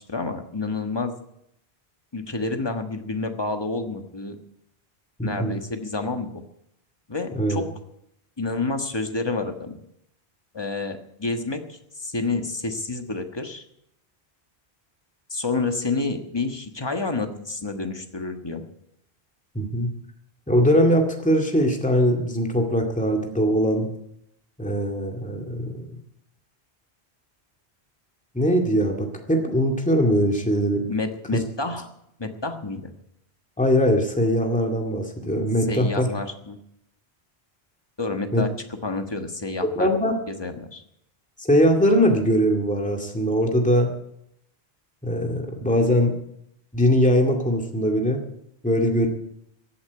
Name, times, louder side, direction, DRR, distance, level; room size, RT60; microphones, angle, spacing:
voice 1, 0.1-1.2 2.1-4.4 5.2-6.4 7.1-7.7 8.4-9.7 10.5-13.6 15.3-18.6 30.9-31.9 32.2-32.9 35.7-36.6 38.0-39.9 40.3-40.8, left 3 dB, 25° left, 5 dB, 1.4 m, -29 dB
voice 2, 5.2-5.5 7.3-7.6 19.5-19.9 20.5-23.9 24.6-25.8 28.3-30.8 31.3-31.4 33.6-36.1 38.3-38.5 39.8-40.1 41.4-43.9 45.0-46.2 46.7-48.2 48.6-49.1, equal, 5° left, 2 dB, 2.1 m, -21 dB
15.5 x 8.7 x 9.6 m, 0.78 s
omnidirectional pair, 1.1 m